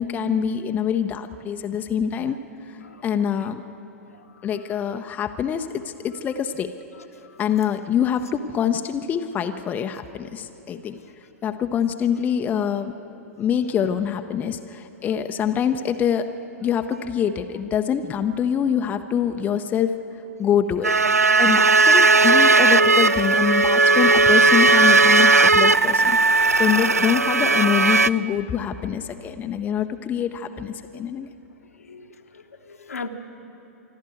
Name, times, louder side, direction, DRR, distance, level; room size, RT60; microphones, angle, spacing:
voice 1, 0.0-2.4 3.0-3.6 4.4-6.7 7.4-11.0 11.4-12.9 13.4-16.3 16.6-19.9 20.4-31.3, left 8 dB, 20° left, 7 dB, 0.7 m, -25 dB
sound 1, 20.8-28.1, right 3 dB, 80° right, 0.4 m, -16 dB
voice 2, 32.3-33.1, left 5 dB, 75° left, 5 dB, 1.3 m, -38 dB
26.0 x 12.0 x 9.1 m, 2.9 s
figure-of-eight pair, 105°, 8 cm